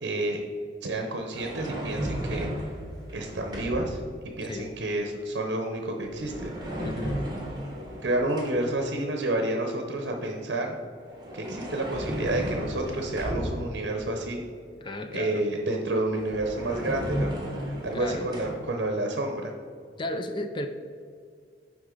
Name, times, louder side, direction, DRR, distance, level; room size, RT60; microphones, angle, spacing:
voice 1, 0.0-0.4 0.8-2.5 3.1-4.0 4.4-6.5 8.0-10.8 11.3-14.4 15.1-17.3 17.8-19.5, right 2 dB, 65° right, 3 dB, 0.7 m, -29 dB
sound 1, 1.3-4.0 6.0-8.8 11.0-13.9 15.8-15.9 16.1-18.5, equal, 25° right, 1.1 m, -34 dB
voice 2, 6.8-7.2 14.8-15.4 17.9-18.3 20.0-20.7, left 1 dB, 25° left, 7 dB, 0.4 m, -33 dB
8.0 x 5.1 x 3.8 m, 2.2 s
head